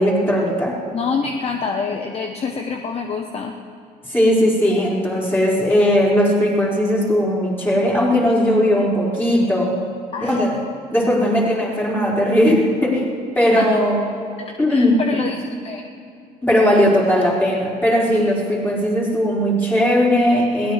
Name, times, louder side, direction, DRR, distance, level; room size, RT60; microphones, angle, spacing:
voice 1, 0.0-0.8 4.1-9.8 10.2-10.6 10.9-13.1 13.3-14.0 14.6-15.0 16.4-20.7, equal, 10° left, -6 dB, 4.9 m, -18 dB
voice 2, 0.9-3.5 10.1-10.4 11.0-11.3 13.5-13.8 14.7-15.8, left 5 dB, 35° left, 3 dB, 1.0 m, -26 dB
22.5 x 18.0 x 3.3 m, 2.5 s
cardioid pair, 110°, 17 cm